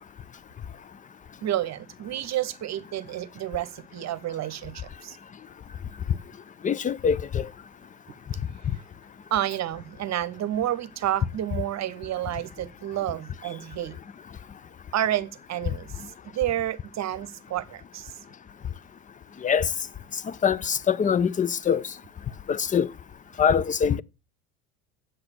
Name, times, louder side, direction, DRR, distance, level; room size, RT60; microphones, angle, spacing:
voice 1, 1.4-5.2 9.3-14.0 14.9-15.9 16.2-18.1, right 12 dB, 40° right, 1.1 m, -30 dB
voice 2, 6.6-7.5 19.4-19.7 20.2-21.8 22.5-22.9 23.4-24.0, left 7 dB, 20° left, 0.5 m, -23 dB
8.1 x 7.9 x 7.4 m
hypercardioid pair, 75°, 42 cm